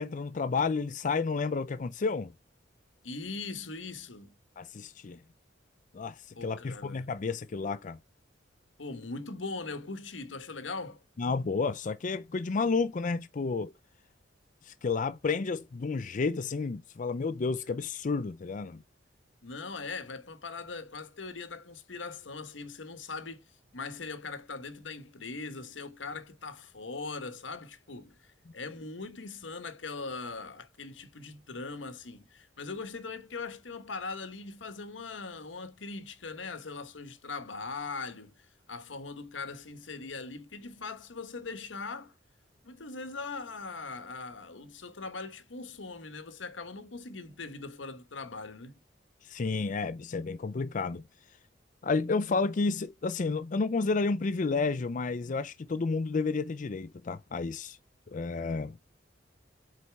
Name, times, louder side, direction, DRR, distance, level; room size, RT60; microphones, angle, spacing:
voice 1, 0.0-2.3 4.6-5.2 5.9-8.0 11.2-13.7 14.6-18.8 49.2-51.0 51.8-57.8 58.1-58.8, left 4 dB, 45° left, 0.4 m, -31 dB
voice 2, 3.0-4.3 6.4-7.0 8.8-11.0 19.4-23.5 23.7-42.1 42.6-48.8, left 4 dB, 85° left, 1.2 m, -40 dB
7.8 x 4.3 x 3.4 m
head